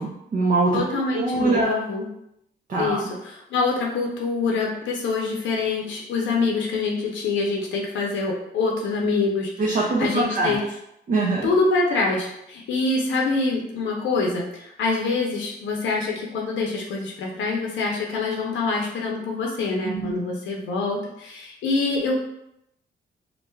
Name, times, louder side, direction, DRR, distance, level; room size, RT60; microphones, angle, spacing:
voice 1, 0.0-0.8 1.1-1.8 2.7-3.0 9.6-10.6 11.1-11.5 19.8-20.2, right 3 dB, 45° right, -4 dB, 0.5 m, -23 dB
voice 2, 0.7-2.1 2.7-10.6 11.4-22.2, left 3 dB, 90° left, -1 dB, 0.6 m, -25 dB
2.5 x 2.2 x 3.1 m, 0.79 s
cardioid pair, 125°, 19 cm